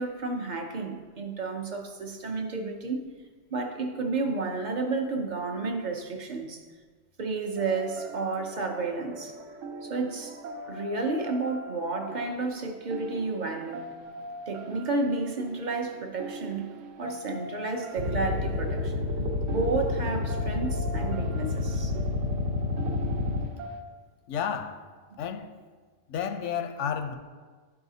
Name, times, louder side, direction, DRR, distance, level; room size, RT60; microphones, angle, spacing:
voice 1, 0.0-3.0 3.5-6.6 7.2-9.4 9.8-10.4 10.7-13.8 14.5-16.7 17.0-21.9, right 3 dB, 50° right, 3 dB, 0.7 m, -31 dB
sound 1, 7.6-23.8, right 2 dB, 90° right, 1.0 m, -42 dB
sound 2, 18.0-23.5, left 3 dB, 65° right, 1.0 m, -29 dB
voice 2, 24.3-24.8 25.2-25.6 26.1-27.1, left 7 dB, 85° left, 8 dB, 0.9 m, -31 dB
11.5 x 4.8 x 2.7 m, 1.5 s
omnidirectional pair, 1.2 m